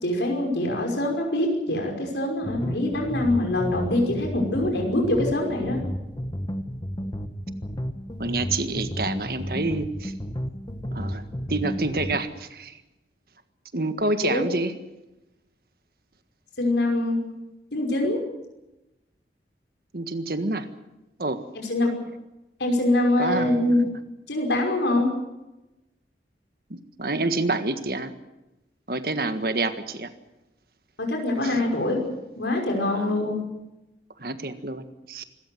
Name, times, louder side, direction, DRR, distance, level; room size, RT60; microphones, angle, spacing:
voice 1, 0.0-5.8 14.2-14.4 16.6-17.2 17.7-18.2 21.7-21.9 22.6-23.8 24.3-25.1 31.0-32.0 32.4-33.4, left 1 dB, 85° left, 2 dB, 5.7 m, -24 dB
sound 1, 2.4-12.2, equal, 25° left, 1.3 m, -32 dB
voice 2, 8.2-10.1 10.9-11.2 11.5-12.8 13.7-14.7 19.9-20.7 21.2-21.4 23.2-23.7 27.0-28.1 28.9-30.1 31.4-31.5 32.9-33.2 34.2-35.2, right 2 dB, 55° right, 9 dB, 1.7 m, -28 dB
26.0 x 14.5 x 9.4 m, 0.99 s
head